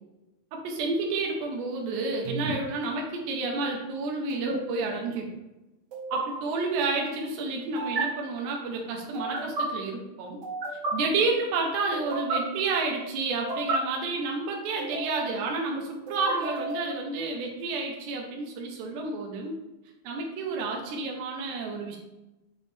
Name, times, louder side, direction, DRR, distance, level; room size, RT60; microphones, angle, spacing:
voice 1, 0.5-5.3 6.1-10.4 10.9-19.5 20.1-22.0, right 3 dB, 90° right, 0 dB, 3.5 m, -30 dB
sound 1, 2.2-2.5 4.3-4.6 5.9-6.2 7.8-8.0 9.1-9.6 10.4-10.9 11.9-12.4 13.3-13.8 14.8-15.4 16.1-16.9, right 3 dB, 45° right, 2.5 m, -32 dB
8.0 x 6.4 x 3.5 m, 1.0 s
omnidirectional pair, 4.8 m